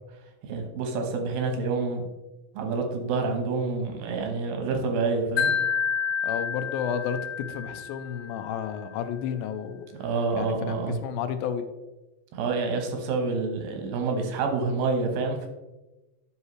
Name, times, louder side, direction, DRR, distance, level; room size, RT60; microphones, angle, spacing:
voice 1, 0.4-2.0 2.5-5.5 10.0-11.0 12.3-15.5, right 4 dB, 90° right, 4 dB, 2.9 m, -28 dB
Wind chime, 5.4-8.5, left 8 dB, 35° left, 2.3 m, -29 dB
voice 2, 6.2-7.2 7.5-9.8 10.3-11.7, left 8 dB, 90° left, 9 dB, 2.4 m, -31 dB
10.5 x 5.6 x 3.1 m, 1.1 s
omnidirectional pair, 4.1 m